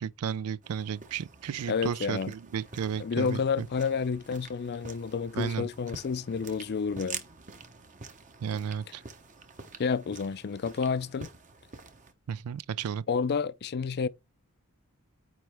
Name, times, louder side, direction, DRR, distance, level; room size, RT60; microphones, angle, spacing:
voice 1, 0.0-3.7 5.3-5.7 8.4-9.0 12.3-13.1, right 7 dB, 80° right, 0.4 m, -33 dB
sound 1, 0.6-12.1, right 4 dB, 35° right, 0.9 m, -47 dB
voice 2, 1.7-2.3 3.0-7.2 9.8-11.3 13.1-14.1, left 5 dB, 45° left, 0.4 m, -30 dB
9.1 x 3.2 x 3.4 m
head